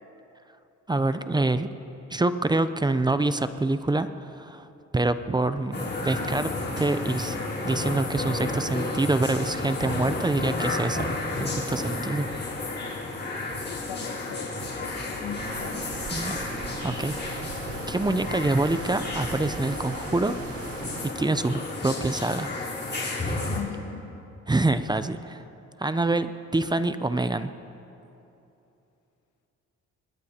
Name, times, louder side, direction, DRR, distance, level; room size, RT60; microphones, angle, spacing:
voice 1, 0.9-1.7 2.1-4.7 4.9-7.4 7.6-11.1 11.4-12.3 16.1-16.5 16.8-17.5 17.9-20.3 21.2-22.5 24.5-25.4 25.8-27.5, right 2 dB, 15° right, 11 dB, 0.6 m, -26 dB
sound 1, 5.7-23.6, left 2 dB, 35° left, 3.9 m, -32 dB
sound 2, 11.4-11.5 11.7-12.0 12.3-12.6 12.9-13.2 13.5-13.8 14.1-16.2 16.5-16.8 17.1-17.4 17.7-18.0 18.3-18.6 18.9-20.6, right 2 dB, 75° right, 4.3 m, -47 dB
voice 2, 13.6-15.9 23.4-24.1, left 7 dB, 85° left, 6 dB, 1.3 m, -39 dB
sound 3, 15.4-21.1, right 7 dB, 50° right, 0.9 m, -40 dB
23.5 x 20.5 x 2.9 m, 2.9 s
cardioid pair, 90°, 30 cm